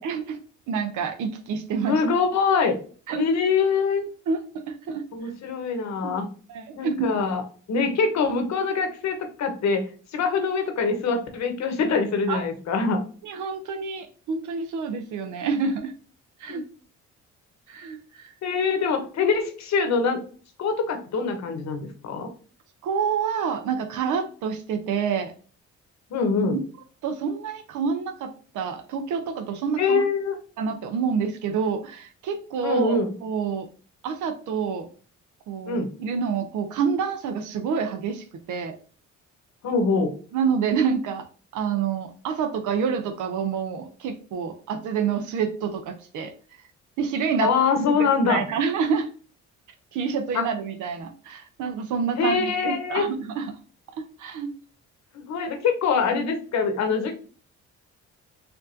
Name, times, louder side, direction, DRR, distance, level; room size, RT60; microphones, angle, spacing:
voice 1, 0.0-0.4 0.7-2.0 3.1-3.3 4.3-5.0 6.0-6.1 6.5-7.1 12.3-12.4 13.2-15.9 16.4-16.6 17.7-18.3 22.8-25.3 26.4-26.6 27.0-30.1 30.6-33.7 34.0-34.9 35.5-38.7 40.3-41.3 41.5-46.3 47.0-47.5 47.8-49.1 49.9-53.5 54.2-54.5, right 6 dB, 80° right, 7 dB, 0.6 m, -28 dB
voice 2, 1.9-2.8 3.1-4.1 5.1-6.3 6.8-7.4 7.7-9.8 10.1-13.0 16.5-16.6 18.4-20.2 20.6-22.3 26.1-26.5 29.8-30.3 32.6-33.1 35.7-35.9 39.6-40.1 47.4-48.4 50.3-50.4 52.2-53.1 55.1-57.1, left 5 dB, 65° left, 6 dB, 1.0 m, -24 dB
4.5 x 2.5 x 2.6 m, 0.40 s
cardioid pair, 90°, 30 cm